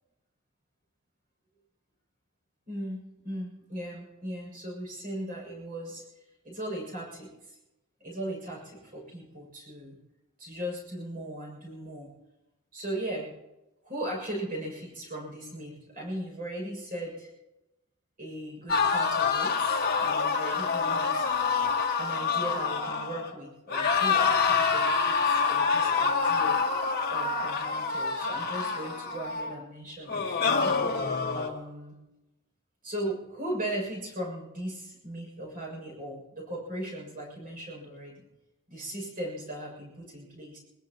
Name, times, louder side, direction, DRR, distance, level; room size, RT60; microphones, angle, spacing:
voice 1, 2.7-6.1 6.4-7.6 8.0-10.0 10.4-12.1 12.7-13.3 13.8-17.3 18.2-21.3 22.0-26.6 27.1-30.8 31.3-32.0 32.8-38.3 38.7-40.6, right 1 dB, 40° right, -1 dB, 7.0 m, -38 dB
sound 1, 18.7-23.3 23.7-29.5 30.1-31.5, left 5 dB, 45° left, 1.6 m, -26 dB
21.5 x 20.5 x 3.0 m, 0.99 s
head